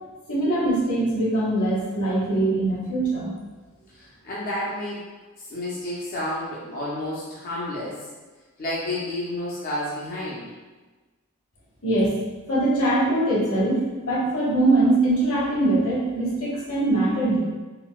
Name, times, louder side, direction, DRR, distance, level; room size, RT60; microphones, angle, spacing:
voice 1, 0.3-3.3 11.8-12.2 12.5-17.4, right 2 dB, 80° left, -7 dB, 1.1 m, -22 dB
voice 2, 4.0-5.0 5.5-8.0 8.6-10.5, left 1 dB, 40° left, -7 dB, 0.5 m, -30 dB
3.8 x 2.1 x 2.2 m, 1.3 s
head